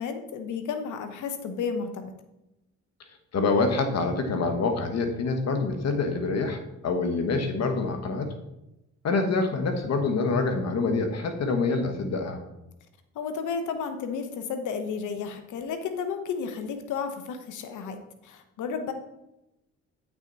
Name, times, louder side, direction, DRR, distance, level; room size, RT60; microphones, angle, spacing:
voice 1, 0.0-2.1 13.1-18.9, left 6 dB, 80° left, 7 dB, 1.1 m, -32 dB
voice 2, 3.3-8.4 9.0-12.4, left 3 dB, 60° left, 6 dB, 1.3 m, -26 dB
8.4 x 6.0 x 4.0 m, 0.91 s
cardioid pair, 90°, 30 cm